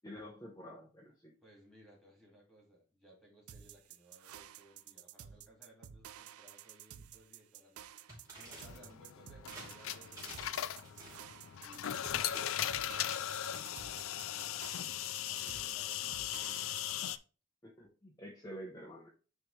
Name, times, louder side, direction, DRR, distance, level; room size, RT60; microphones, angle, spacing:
voice 1, 0.0-1.3 17.6-19.1, equal, 15° left, -2 dB, 0.9 m, -48 dB
voice 2, 1.4-10.5 10.7-11.4 11.6-14.9 15.3-16.8, equal, ahead, -2 dB, 2.2 m, -62 dB
sound 1, 3.5-17.2, right 9 dB, 85° right, 0.4 m, -53 dB
sound 2, 8.1-8.9 9.5-9.7 10.2-10.6 10.8-11.4 12.1-13.3, right 2 dB, 15° right, 2.9 m, -52 dB
sound 3, 8.4-17.2, left 11 dB, 70° left, 0.3 m, -38 dB
9.5 x 3.3 x 3.2 m, 0.36 s
head